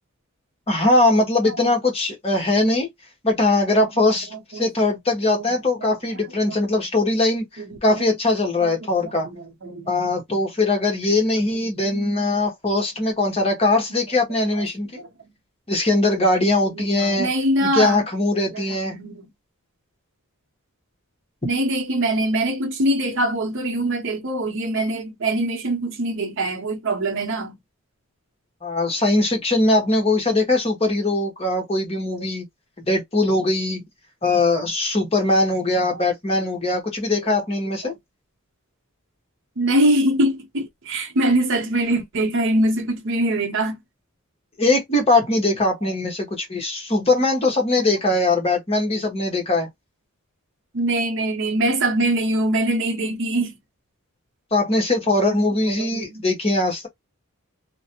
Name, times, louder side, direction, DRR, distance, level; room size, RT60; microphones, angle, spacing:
voice 1, 0.7-2.9 3.2-9.3 9.9-15.0 15.7-17.3 17.6-18.9 28.6-32.4 32.8-33.8 34.2-37.9 44.6-49.7 54.5-56.9, left 2 dB, 30° left, 0.9 m, -21 dB
voice 2, 4.0-4.7 5.3-5.5 5.8-6.6 7.6-8.1 8.6-9.9 11.2-12.2 13.2-13.3 13.9-14.0 14.4-14.6 15.0-15.1 16.6-18.0 18.5-19.3 21.4-27.5 30.3-30.4 32.1-32.3 35.9-36.0 36.3-36.5 37.2-37.3 37.8-37.9 39.6-43.8 50.7-53.6 55.3-55.4 55.7-56.2, right 1 dB, 60° right, 0.8 m, -24 dB
2.4 x 2.1 x 2.6 m
head